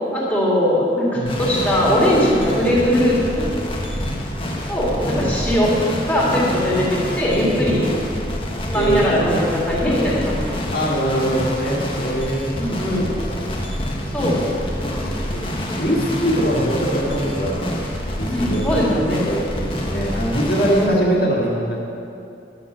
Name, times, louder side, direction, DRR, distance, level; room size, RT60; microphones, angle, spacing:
voice 1, 0.1-3.5 4.7-5.7 6.0-7.8 8.7-10.5 12.6-13.1 14.1-14.4 14.8-15.0 18.3-19.2 20.7-21.2, equal, 10° left, -7 dB, 2.4 m, -20 dB
sound 1, 1.3-20.9, equal, 30° left, 1.1 m, -27 dB
voice 2, 5.0-5.4 7.5-8.0 8.7-9.1 10.7-12.5 12.9-13.0 13.3-13.4 14.2-15.4 15.8-17.8 18.2-21.8, right 1 dB, 55° left, -4 dB, 2.1 m, -23 dB
11.0 x 6.1 x 7.0 m, 2.5 s
head